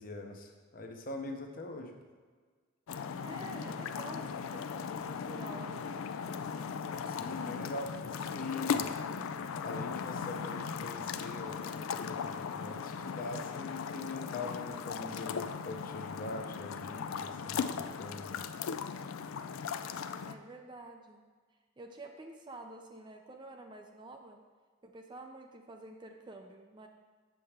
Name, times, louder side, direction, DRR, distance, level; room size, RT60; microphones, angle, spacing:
voice 1, 0.0-1.9 7.1-8.9 9.6-18.4, left 2 dB, 40° left, 3 dB, 0.7 m, -43 dB
sound 1, 2.9-20.3, left 6 dB, 80° left, 0.4 m, -38 dB
voice 2, 3.2-6.0 20.3-21.2 21.8-24.4 24.8-26.9, right 2 dB, 20° right, 4 dB, 0.4 m, -49 dB
7.3 x 6.8 x 3.4 m, 1.5 s
head